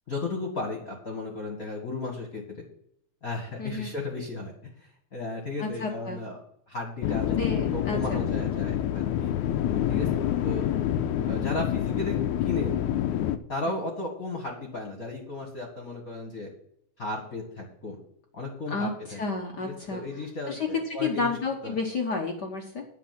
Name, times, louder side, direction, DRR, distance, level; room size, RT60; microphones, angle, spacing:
voice 1, 0.1-2.7 3.2-4.5 4.8-6.4 6.7-9.3 9.9-10.7 11.2-12.7 13.5-16.5 17.0-18.0 18.3-19.2 19.6-21.3 21.6-21.8, left 2 dB, 35° left, 0 dB, 1.7 m, -35 dB
voice 2, 3.6-3.9 5.6-6.2 7.3-8.2 18.7-20.0 20.5-22.8, left 4 dB, 60° left, 2 dB, 1.0 m, -31 dB
sound 1, 7.0-13.4, left 10 dB, 90° left, 2.1 m, -27 dB
10.0 x 7.3 x 5.9 m, 0.69 s
omnidirectional pair, 3.4 m